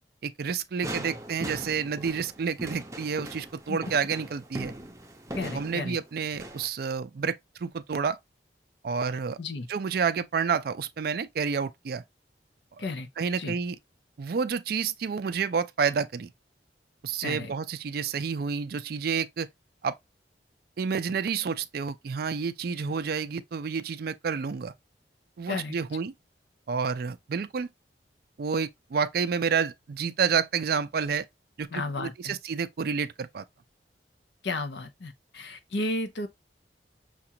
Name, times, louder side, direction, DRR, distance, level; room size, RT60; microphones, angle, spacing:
voice 1, 0.2-4.7 5.5-8.2 8.8-9.4 9.7-12.0 12.8-12.9 13.2-13.8 14.2-16.3 17.0-19.5 19.8-19.9 20.8-24.7 25.4-26.1 26.7-27.7 28.4-31.3 31.6-31.7 32.0-33.4, right 6 dB, 55° right, 0.4 m, -29 dB
sound 1, 0.8-6.7, right 1 dB, 15° right, 0.6 m, -40 dB
voice 2, 5.3-6.0 9.4-9.7 12.8-13.1 13.4-13.6 17.2-17.5 25.5-25.8 31.7-32.3 34.4-36.3, left 2 dB, 75° left, 0.7 m, -33 dB
5.8 x 2.4 x 2.7 m
head